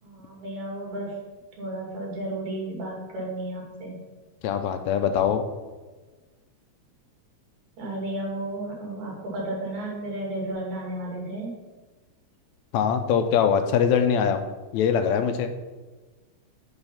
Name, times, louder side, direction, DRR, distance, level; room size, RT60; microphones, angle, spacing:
voice 1, 0.0-1.2 1.6-4.0 7.8-11.5, right 1 dB, 75° right, -2 dB, 3.4 m, -33 dB
voice 2, 4.4-5.4 12.7-14.4 14.7-15.5, left 7 dB, 80° left, 7 dB, 1.8 m, -22 dB
9.0 x 4.0 x 5.6 m, 1.3 s
omnidirectional pair, 3.4 m